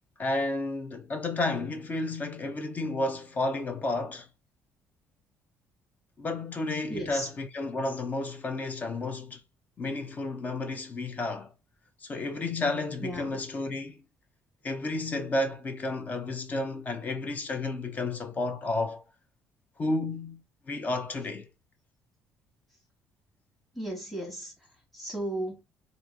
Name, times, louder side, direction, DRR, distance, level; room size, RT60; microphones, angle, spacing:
voice 1, 0.2-4.3 6.2-9.4 9.8-11.5 12.0-14.0 14.6-19.0 19.8-21.5, left 2 dB, 30° left, 0.7 m, -32 dB
voice 2, 6.9-7.3 13.0-13.4 23.7-25.6, right 1 dB, ahead, 1.5 m, -36 dB
3.1 x 2.6 x 3.7 m
cardioid pair, 135°, 5 cm